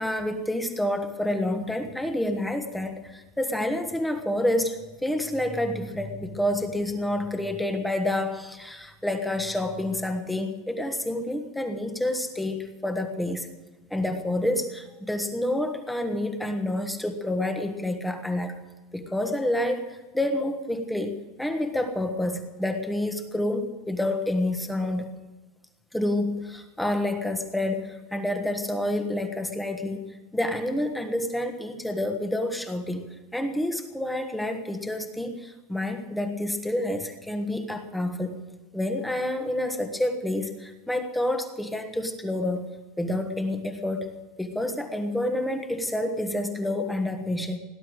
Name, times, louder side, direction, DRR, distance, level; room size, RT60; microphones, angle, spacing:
voice 1, 0.0-13.5 13.9-18.6 18.9-25.2 25.9-38.4 38.7-42.7 43.0-44.1 44.4-47.6, left 1 dB, 5° left, 6 dB, 1.3 m, -28 dB
18.0 x 11.0 x 6.3 m, 1.2 s
supercardioid pair, 170°, 0 cm